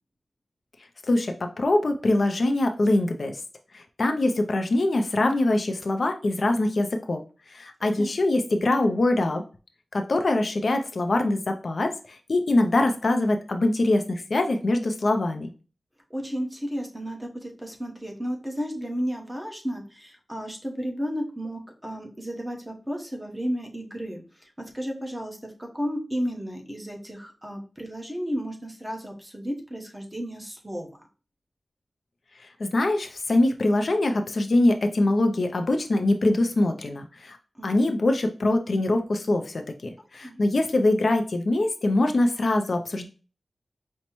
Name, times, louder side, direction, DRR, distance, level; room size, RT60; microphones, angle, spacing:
voice 1, 1.1-3.4 3.7-7.2 7.5-9.4 9.9-15.5 32.6-37.4 37.6-43.1, left 2 dB, 55° left, 5 dB, 0.4 m, -23 dB
voice 2, 16.1-30.9 37.6-37.8 40.2-40.4, equal, 10° right, 1 dB, 0.9 m, -33 dB
5.3 x 2.1 x 2.9 m, 0.35 s
wide cardioid pair, 100°, 0 cm